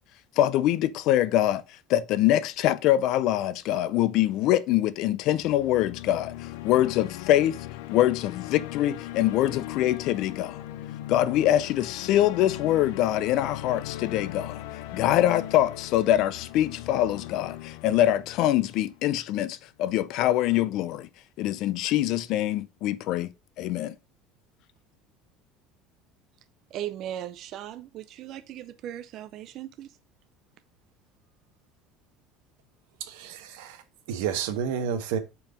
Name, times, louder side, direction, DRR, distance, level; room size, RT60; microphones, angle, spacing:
voice 1, 0.4-1.6 1.9-7.6 7.9-10.6 11.1-14.6 14.9-21.1 21.4-23.3 23.6-24.0, left 13 dB, 45° left, 0.4 m, -24 dB
sound 1, 5.2-19.4, left 14 dB, 85° left, 0.6 m, -39 dB
voice 2, 26.7-29.9, right 11 dB, 40° right, 0.4 m, -37 dB
voice 3, 33.1-33.8 34.1-35.2, right 8 dB, 85° right, 1.3 m, -30 dB
5.5 x 4.6 x 5.0 m
cardioid pair, 175°, 0 cm